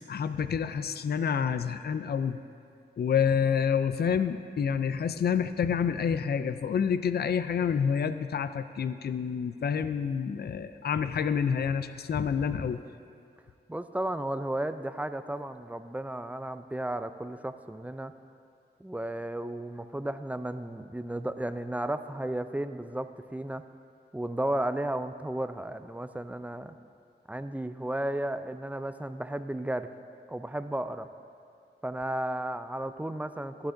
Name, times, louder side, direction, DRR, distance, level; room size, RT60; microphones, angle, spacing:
voice 1, 0.1-2.4 3.0-12.8, left 7 dB, 60° left, 11 dB, 0.4 m, -28 dB
voice 2, 13.7-18.1 18.8-23.7 24.1-26.8 27.3-29.9 30.3-31.1 31.8-33.7, right 1 dB, 10° right, 10 dB, 0.4 m, -34 dB
15.0 x 11.5 x 2.6 m, 2.4 s
wide cardioid pair, 65°, 19 cm